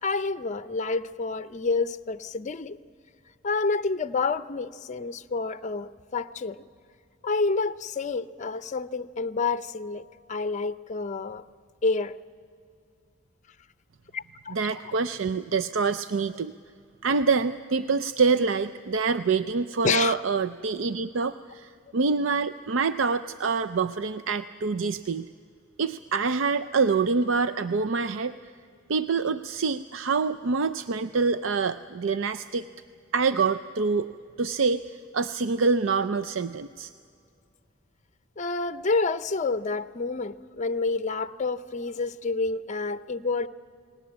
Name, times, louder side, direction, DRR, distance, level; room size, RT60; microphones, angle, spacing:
voice 1, 0.0-2.8 3.4-6.6 7.2-11.4 11.8-12.2 14.1-14.6 19.8-20.2 38.4-43.5, left 4 dB, 40° left, 13 dB, 0.6 m, -28 dB
voice 2, 14.5-16.5 17.0-25.3 25.8-28.3 28.9-32.6 33.1-34.1 34.4-36.9, right 4 dB, 75° right, 10 dB, 0.5 m, -26 dB
29.5 x 19.5 x 8.7 m, 2.4 s
head